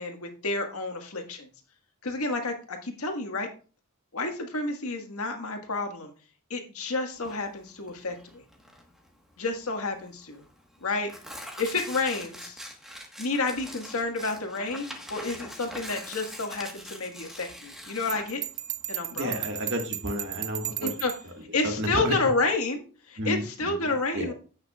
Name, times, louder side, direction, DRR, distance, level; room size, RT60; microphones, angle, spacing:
voice 1, 0.0-1.5 2.0-3.5 4.1-6.1 6.5-8.4 9.4-10.4 10.8-11.1 11.6-12.6 13.2-18.4 18.9-19.4 20.8-21.1 21.5-24.3, left 3 dB, 80° left, 4 dB, 1.7 m, -30 dB
Tearing, 7.2-21.4, equal, ahead, 1.3 m, -44 dB
Bell, 18.1-21.3, right 13 dB, 35° right, 0.5 m, -35 dB
voice 2, 19.1-20.9 21.6-22.1 23.2-24.3, equal, 55° right, 3 dB, 1.7 m, -31 dB
16.0 x 5.9 x 2.4 m, 0.37 s
head